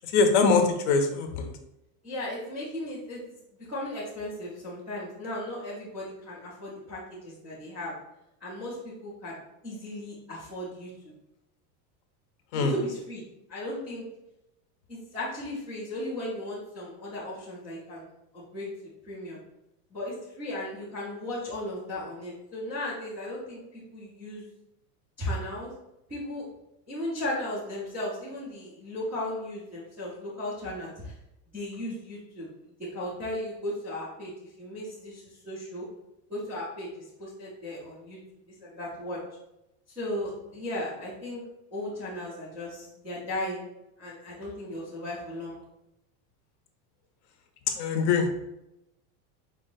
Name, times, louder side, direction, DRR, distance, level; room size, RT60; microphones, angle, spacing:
voice 1, 0.0-1.5 12.5-12.7 47.7-48.3, left 4 dB, 50° left, 6 dB, 0.6 m, -23 dB
voice 2, 2.0-3.2 3.7-7.9 8.4-11.1 12.5-13.2 13.5-14.0 14.9-18.1 18.3-18.7 19.1-19.4 19.9-24.5 25.2-25.7 26.1-26.4 26.9-31.1 31.5-32.5 32.9-34.3 34.6-35.8 36.3-36.9 37.2-38.2 38.6-39.2 40.0-41.4 41.7-43.7 44.0-45.6, left 1 dB, 5° right, -13 dB, 0.3 m, -36 dB
4.7 x 2.6 x 3.7 m, 0.88 s
supercardioid pair, 175°, 45 cm